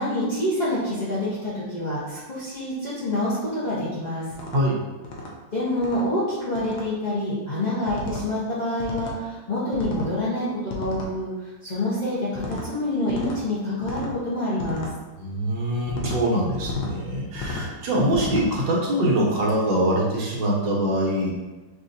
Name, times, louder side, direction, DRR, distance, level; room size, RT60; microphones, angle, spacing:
voice 1, 0.0-4.2 5.5-14.9, left 1 dB, 40° left, -12 dB, 0.6 m, -27 dB
sound 1, 4.3-4.6 5.0-5.3 5.8-6.1 6.5-6.8 7.9-8.3 8.8-9.2 9.7-10.1 10.7-11.1 12.3-12.7 13.1-13.4 13.8-14.1 14.6-14.9 15.9-16.2 16.6-16.9 17.3-17.7 18.1-18.5, left 2 dB, 80° left, 1.5 m, -33 dB
voice 2, 15.2-21.3, right 1 dB, 65° right, -4 dB, 1.6 m, -23 dB
5.9 x 2.6 x 2.6 m, 1.2 s
omnidirectional pair, 2.2 m